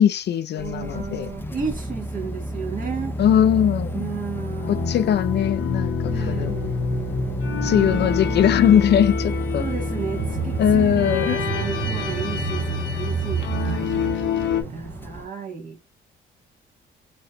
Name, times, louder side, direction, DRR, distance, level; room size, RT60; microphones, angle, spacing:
voice 1, 0.0-1.3 3.2-4.0 4.7-6.5 7.6-9.7 10.6-11.4, left 9 dB, 60° left, 0.5 m, -20 dB
sound 1, 0.6-15.3, equal, 10° left, 0.5 m, -31 dB
voice 2, 0.6-3.2 3.9-4.9 6.1-6.9 7.7-8.8 9.6-14.1 14.6-15.8, right 6 dB, 45° right, 1.8 m, -33 dB
sound 2, 4.6-14.6, left 7 dB, 75° left, 1.0 m, -28 dB
sound 3, 10.2-15.2, right 9 dB, 65° right, 0.4 m, -30 dB
4.2 x 3.1 x 2.5 m
cardioid pair, 90°, 20 cm